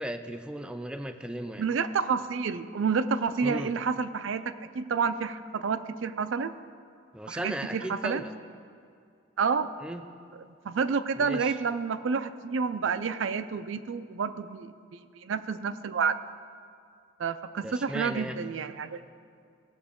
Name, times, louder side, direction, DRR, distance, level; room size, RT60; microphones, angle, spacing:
voice 1, 0.0-1.6 3.4-3.7 7.1-8.3 9.8-10.1 11.2-11.6 17.6-18.4, right 1 dB, 5° right, 7 dB, 0.4 m, -36 dB
voice 2, 1.6-6.5 7.3-8.2 9.4-9.7 10.6-16.2 17.2-19.0, right 5 dB, 90° right, 11 dB, 0.4 m, -29 dB
17.5 x 6.8 x 3.7 m, 2.3 s
head